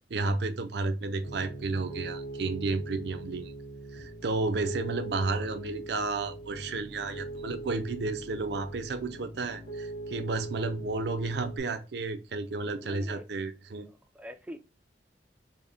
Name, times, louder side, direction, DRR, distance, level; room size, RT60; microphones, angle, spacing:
voice 1, 0.1-3.5 3.9-13.9, right 3 dB, 65° right, 0.5 m, -32 dB
Piano, 1.2-11.6, right 2 dB, 85° left, 1.4 m, -42 dB
voice 2, 12.8-13.3 13.8-14.6, equal, 5° right, 0.3 m, -44 dB
4.0 x 2.1 x 3.4 m
head